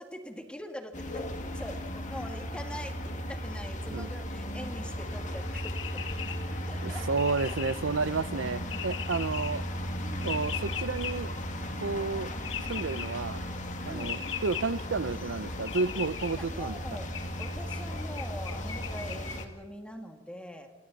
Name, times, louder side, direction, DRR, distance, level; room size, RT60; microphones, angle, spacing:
voice 1, 0.0-6.3 6.7-7.1 10.0-10.3 13.8-14.2 16.3-17.1 17.4-20.7, equal, 5° left, 2.2 m, -43 dB
sound 1, 0.9-19.5, equal, 40° left, 2.4 m, -36 dB
sound 2, 5.4-19.4, left 6 dB, 70° left, 1.9 m, -41 dB
voice 2, 6.8-9.6 10.2-11.3 11.8-12.3 12.6-13.4 13.9-16.8, right 4 dB, 70° right, 0.7 m, -31 dB
29.5 x 27.5 x 4.2 m
head